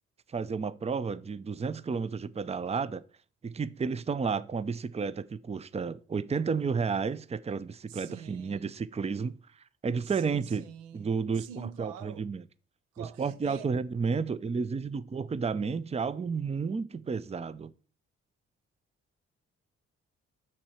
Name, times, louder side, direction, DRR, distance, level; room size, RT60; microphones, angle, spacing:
voice 1, 0.3-3.0 3.4-9.4 9.8-10.6 10.9-12.4 13.0-17.7, right 5 dB, 20° right, 0.5 m, -32 dB
voice 2, 7.9-8.7 10.0-12.3 12.9-13.7, right 10 dB, 85° right, 0.7 m, -46 dB
8.4 x 6.5 x 4.4 m
hypercardioid pair, 45°, 31 cm